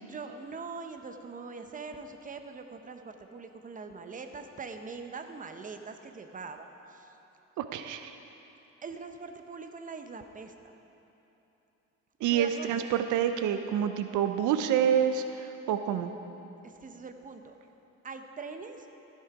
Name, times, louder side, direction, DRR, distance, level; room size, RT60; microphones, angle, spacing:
voice 1, 0.0-7.1 8.8-10.7 12.2-13.1 16.6-17.6 18.0-18.9, right 4 dB, 25° right, 6 dB, 0.8 m, -42 dB
voice 2, 7.6-8.2 12.2-16.1, right 9 dB, 85° right, 8 dB, 0.6 m, -28 dB
14.5 x 6.6 x 4.8 m, 3.0 s
cardioid pair, 90°, 30 cm